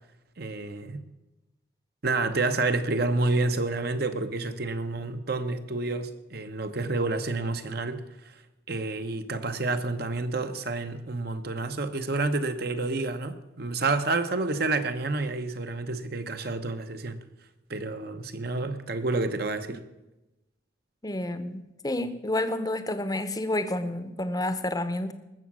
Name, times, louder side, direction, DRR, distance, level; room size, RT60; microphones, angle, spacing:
voice 1, 0.4-1.0 2.0-8.0 8.2-8.3 8.7-17.2 17.7-19.8, right 3 dB, 55° right, 0.9 m, -29 dB
voice 2, 21.0-25.1, left 1 dB, 20° left, 0.8 m, -29 dB
20.0 x 7.3 x 6.2 m
head